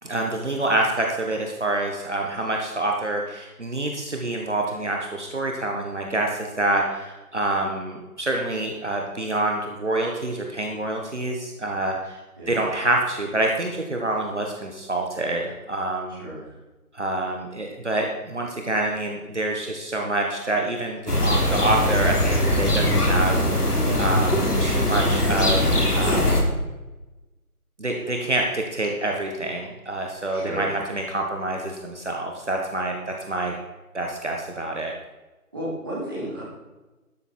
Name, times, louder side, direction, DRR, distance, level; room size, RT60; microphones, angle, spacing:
voice 1, 0.0-12.2 12.5-16.2 16.9-25.6 25.9-26.5 27.8-33.6 33.9-34.9, right 2 dB, 50° right, 1 dB, 1.6 m, -27 dB
voice 2, 16.1-16.4 30.3-30.7 35.5-36.4, right 1 dB, 15° right, -8 dB, 2.8 m, -32 dB
sound 1, 21.1-26.4, left 1 dB, 90° left, 3.6 m, -21 dB
12.5 x 9.8 x 4.5 m, 1.1 s
figure-of-eight pair, 175°, 45 cm